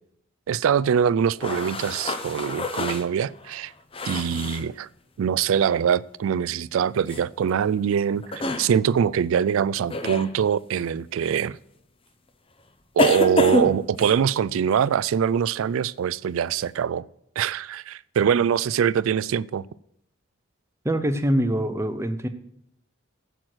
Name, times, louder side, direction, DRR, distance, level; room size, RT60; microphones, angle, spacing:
voice 1, 0.5-3.7 4.0-4.9 5.2-11.6 13.0-17.1 17.4-19.6, right 8 dB, 75° right, 0.3 m, -23 dB
sound 1, 1.4-4.7 7.1-7.2 8.2-8.7 9.9-10.3 11.2-11.3 13.0-14.2, left 2 dB, 25° left, 0.7 m, -27 dB
voice 2, 20.8-22.3, right 1 dB, 15° right, 0.6 m, -24 dB
8.6 x 8.0 x 6.2 m
head